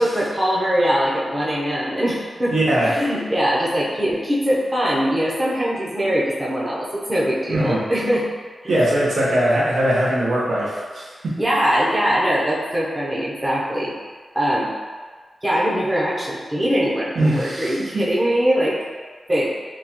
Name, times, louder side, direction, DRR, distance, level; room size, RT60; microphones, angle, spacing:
voice 1, 0.0-8.3 8.6-8.8 11.4-13.9 14.3-14.7 15.4-18.8 19.3-19.5, equal, 20° right, -7 dB, 0.6 m, -22 dB
voice 2, 2.5-2.9 7.5-7.8 8.7-11.3 17.1-17.9, right 1 dB, 80° right, -7 dB, 0.9 m, -20 dB
3.9 x 2.4 x 2.8 m, 1.5 s
wide cardioid pair, 135°, 0 cm